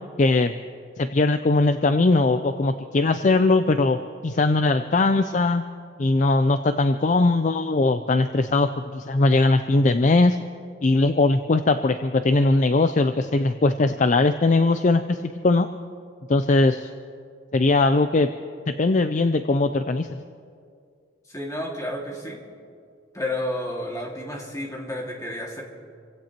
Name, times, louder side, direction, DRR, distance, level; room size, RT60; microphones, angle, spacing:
voice 1, 0.2-0.5 1.0-4.0 4.2-5.6 6.0-10.4 10.8-15.2 15.4-15.7 16.3-16.9 17.5-18.3 18.8-20.1, left 2 dB, 40° left, 9 dB, 0.4 m, -20 dB
voice 2, 21.3-22.4 23.1-25.6, left 1 dB, 15° left, -1 dB, 2.1 m, -31 dB
28.5 x 16.5 x 3.0 m, 2.3 s
head